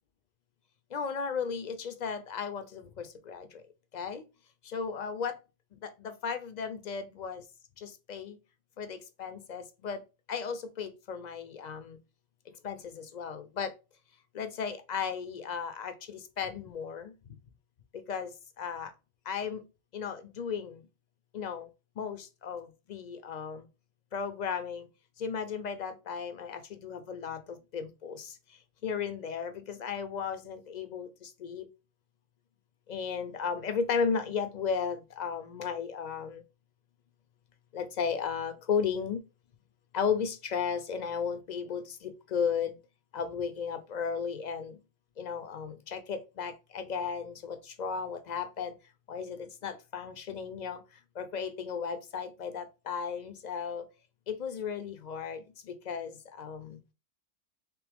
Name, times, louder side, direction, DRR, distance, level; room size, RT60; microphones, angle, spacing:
voice 1, 0.9-3.6 3.9-4.2 4.6-5.4 5.8-7.4 7.8-8.4 8.8-10.0 10.3-12.0 12.6-13.7 14.3-17.1 17.9-18.3 18.6-18.9 19.3-19.6 19.9-20.8 21.3-21.7 22.0-23.6 24.1-24.9 25.2-28.4 28.8-31.7 32.9-36.4 37.7-39.2 39.9-42.8 43.1-44.8 45.2-48.7 49.1-50.8 51.2-53.9 54.3-56.8, left 6 dB, 55° left, 0.5 m, -35 dB
3.4 x 3.2 x 3.4 m
omnidirectional pair, 1.2 m